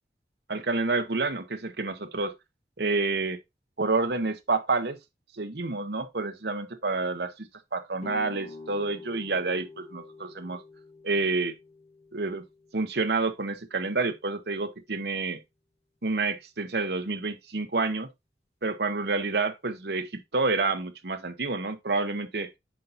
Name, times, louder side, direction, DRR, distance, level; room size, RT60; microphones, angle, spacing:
voice 1, 0.5-2.3 2.8-3.4 3.8-5.0 5.4-10.6 11.0-11.5 12.1-12.4 12.7-15.4 16.0-18.1 18.6-22.5, right 3 dB, 65° right, 1.0 m, -29 dB
sound 1, 8.0-13.7, left 3 dB, 35° left, 1.3 m, -47 dB
8.5 x 5.7 x 2.6 m
head